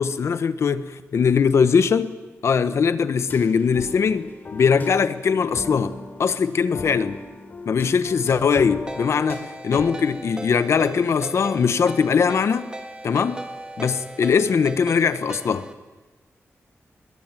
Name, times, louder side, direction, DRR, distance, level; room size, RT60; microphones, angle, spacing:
voice 1, 0.0-2.1 2.4-5.9 6.2-7.2 7.7-12.7 13.0-13.4 13.8-15.7, left 6 dB, 65° left, 12 dB, 1.4 m, -21 dB
sound 1, 3.3-9.9, left 3 dB, 40° left, 3.7 m, -37 dB
Ringtone, 8.9-15.7, right 1 dB, 15° right, 2.2 m, -37 dB
27.5 x 21.5 x 9.3 m, 1.1 s
wide cardioid pair, 165°, 5 cm